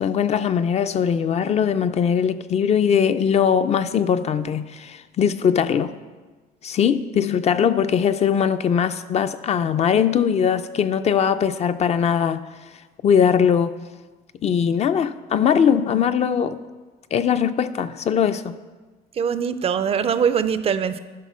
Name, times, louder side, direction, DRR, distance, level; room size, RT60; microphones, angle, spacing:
voice 1, 0.0-5.9 6.6-12.4 13.0-13.7 14.4-16.6 17.1-18.5, left 7 dB, 40° left, 11 dB, 0.4 m, -20 dB
voice 2, 19.2-21.0, right 7 dB, 35° right, 13 dB, 0.4 m, -22 dB
11.5 x 3.8 x 6.1 m, 1.3 s
cardioid pair, 110°, 17 cm